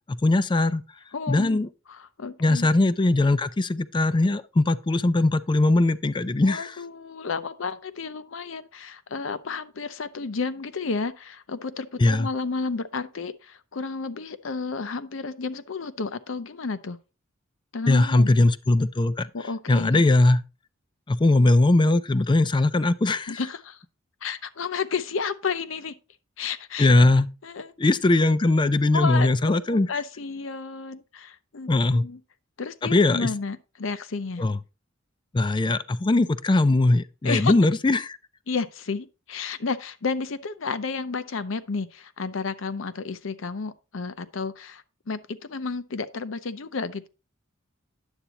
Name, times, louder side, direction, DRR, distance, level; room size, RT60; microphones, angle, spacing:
voice 1, 0.1-0.8 1.3-1.7 2.4-6.8 12.0-12.3 17.9-19.3 19.7-20.4 21.1-23.4 26.8-27.3 27.8-29.9 31.7-32.0 32.8-33.3 34.4-34.6 35.3-38.2, left 2 dB, 25° left, 0.4 m, -20 dB
voice 2, 1.1-1.6 1.9-2.7 6.4-17.0 17.7-18.3 19.3-20.0 23.3-23.8 24.2-26.0 26.4-26.9 27.4-27.7 28.9-32.2 32.6-34.4 37.2-37.5 38.5-47.1, left 4 dB, 70° left, 0.7 m, -32 dB
9.9 x 8.1 x 2.9 m
head